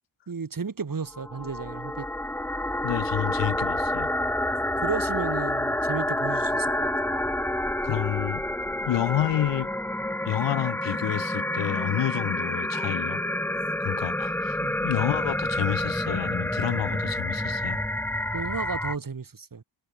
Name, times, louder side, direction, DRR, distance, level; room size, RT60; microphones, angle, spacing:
voice 1, 0.3-2.1 4.8-6.9 14.6-14.8 18.3-19.6, right 5 dB, 45° right, 2.3 m, -33 dB
sound 1, 1.1-19.0, left 1 dB, 5° left, 0.6 m, -28 dB
voice 2, 2.8-4.1 7.8-8.4 8.9-9.7 10.3-13.2 13.8-17.8, left 12 dB, 70° left, 0.5 m, -29 dB
wide cardioid pair, 125°, 46 cm